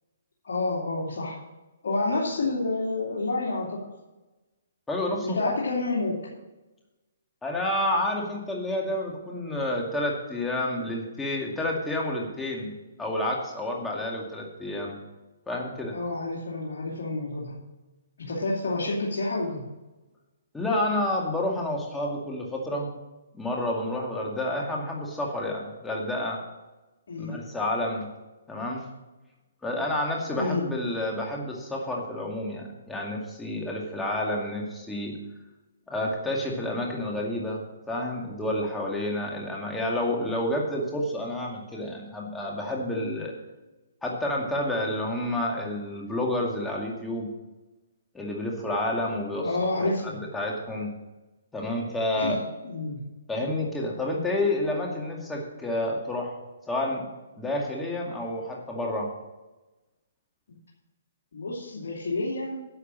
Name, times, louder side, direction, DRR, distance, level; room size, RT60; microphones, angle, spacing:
voice 1, 0.4-1.4 1.8-3.8 5.2-6.2 15.9-17.5 18.3-19.6 27.1-27.4 30.3-30.7 49.4-50.2 52.2-52.4 52.6-53.0 61.3-62.6, left 2 dB, 70° left, -5 dB, 2.7 m, -29 dB
voice 2, 4.9-5.4 7.4-12.7 13.0-14.9 15.5-15.9 20.5-22.9 23.3-26.4 27.2-28.1 28.5-28.8 29.6-35.1 35.9-43.3 44.0-47.3 48.1-49.5 49.8-50.9 51.5-52.4 53.3-56.4 56.7-57.1 57.4-59.1, left 1 dB, 5° left, -2 dB, 2.2 m, -29 dB
10.5 x 6.5 x 7.3 m, 1.1 s
hypercardioid pair, 150°, 0 cm